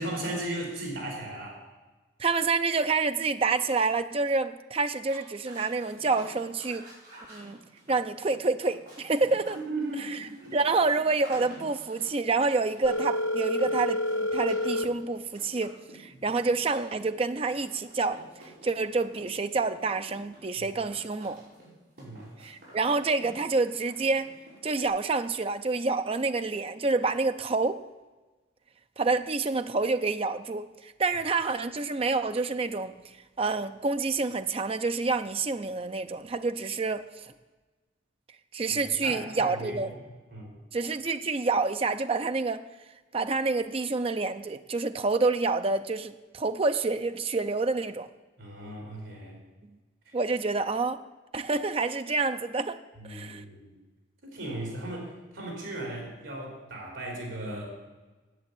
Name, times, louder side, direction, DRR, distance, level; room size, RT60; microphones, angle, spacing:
voice 1, 0.0-1.7 9.5-10.6 16.1-16.2 20.6-20.7 22.0-22.4 38.7-40.6 48.4-49.4 50.1-50.2 53.0-53.7 54.2-57.7, right 1 dB, 70° right, 1 dB, 3.4 m, -37 dB
voice 2, 2.2-6.8 7.3-7.6 7.9-9.6 10.5-18.2 18.6-21.4 22.4-24.3 24.6-27.8 29.0-37.3 38.5-39.9 40.7-42.6 43.1-48.1 50.1-51.0 51.3-52.8 53.1-53.4, right 3 dB, 30° right, 9 dB, 0.4 m, -28 dB
sound 1, 5.0-24.9, right 1 dB, 50° right, 5.3 m, -51 dB
Telephone, 12.8-14.8, left 1 dB, 60° left, 1.0 m, -28 dB
10.5 x 7.8 x 8.4 m, 1.2 s
head